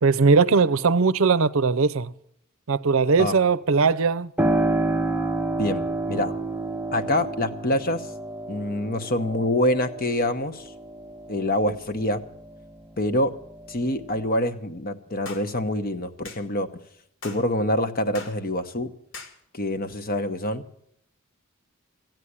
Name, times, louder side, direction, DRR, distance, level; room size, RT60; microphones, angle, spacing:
voice 1, 0.0-2.1 2.7-4.3, right 4 dB, 65° right, 0.6 m, -20 dB
Piano, 4.4-12.8 13.2-14.3, right 2 dB, 10° right, 0.7 m, -29 dB
voice 2, 5.6-6.3 6.9-8.1 8.5-10.7 11.3-12.2 13.0-13.3 13.7-16.7 17.2-18.9 19.5-20.6, left 1 dB, 45° left, 1.1 m, -25 dB
sound 1, 15.3-15.5 16.2-16.4 17.2-17.4 18.1-18.4 19.1-19.4, left 3 dB, 65° left, 2.0 m, -39 dB
15.0 x 9.2 x 9.8 m
head